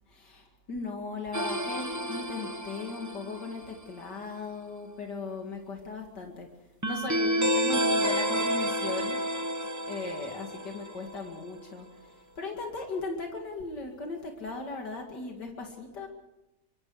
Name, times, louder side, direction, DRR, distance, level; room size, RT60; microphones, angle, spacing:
voice 1, 0.1-9.2 9.9-16.1, left 3 dB, 75° left, 2 dB, 2.9 m, -38 dB
sound 1, 1.3-3.7 6.8-11.3, equal, 15° right, 0.8 m, -30 dB
25.0 x 23.5 x 4.9 m, 0.94 s
omnidirectional pair, 1.8 m